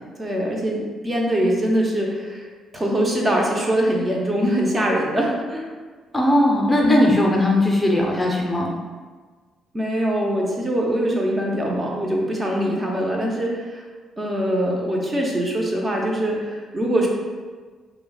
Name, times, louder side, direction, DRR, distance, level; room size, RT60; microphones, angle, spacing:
voice 1, 0.2-2.5 2.7-5.6 6.8-7.0 9.7-13.8 14.2-17.1, right 1 dB, 25° right, -1 dB, 0.6 m, -23 dB
voice 2, 6.1-8.7, left 1 dB, 10° left, -1 dB, 0.5 m, -18 dB
5.1 x 2.1 x 2.3 m, 1.4 s
cardioid pair, 90°, 0 cm